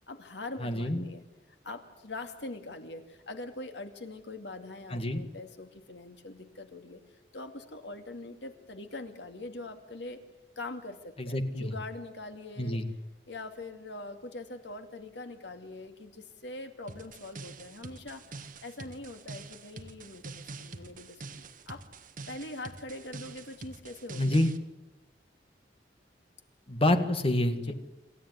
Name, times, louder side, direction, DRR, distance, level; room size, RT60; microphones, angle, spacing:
voice 1, 0.1-1.2 1.6-7.0 7.3-10.2 10.6-12.8 13.3-18.2 18.6-21.8 22.3-24.4 27.5-27.8, left 2 dB, 85° left, 7 dB, 2.4 m, -43 dB
voice 2, 0.6-1.0 4.9-5.2 11.2-11.7 12.6-12.9 24.2-24.5 26.7-27.6, left 1 dB, 35° left, 8 dB, 1.9 m, -27 dB
sound 1, 16.9-24.6, right 3 dB, 50° right, 1.6 m, -45 dB
27.5 x 14.0 x 9.5 m, 1.0 s
head